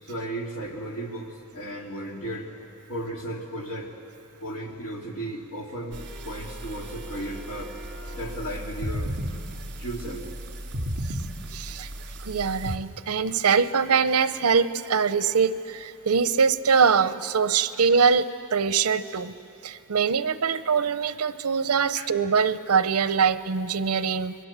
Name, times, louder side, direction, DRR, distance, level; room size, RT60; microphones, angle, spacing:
voice 1, 0.0-2.5 2.9-3.9 4.4-7.7 8.1-9.1 9.8-10.3 21.9-22.1, right 1 dB, 65° left, 0 dB, 2.8 m, -35 dB
sound 1, 5.9-12.8, equal, 55° right, 2.6 m, -35 dB
voice 2, 11.5-11.9 12.2-19.3 19.6-24.3, right 6 dB, 75° right, 13 dB, 0.7 m, -23 dB
26.5 x 21.5 x 7.4 m, 3.0 s
head